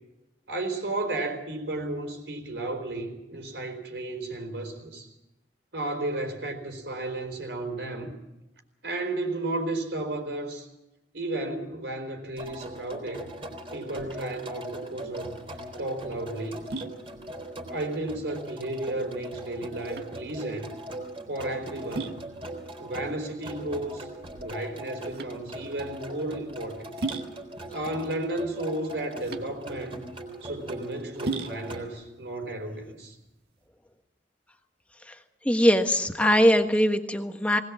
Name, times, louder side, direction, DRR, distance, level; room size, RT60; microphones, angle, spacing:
voice 1, 0.5-5.1 5.7-8.1 8.8-10.7 11.1-13.3 13.7-16.7 17.7-20.7 21.3-22.2 22.8-24.1 24.4-26.9 27.7-30.0 30.4-33.2, right 2 dB, 80° right, 4 dB, 4.3 m, -33 dB
sound 1, 12.4-31.9, right 1 dB, 30° right, 3.7 m, -40 dB
sound 2, 15.1-33.7, right 3 dB, 65° right, 1.7 m, -40 dB
voice 2, 35.4-37.6, equal, 10° left, 6 dB, 1.3 m, -21 dB
20.0 x 19.0 x 7.4 m, 0.96 s
head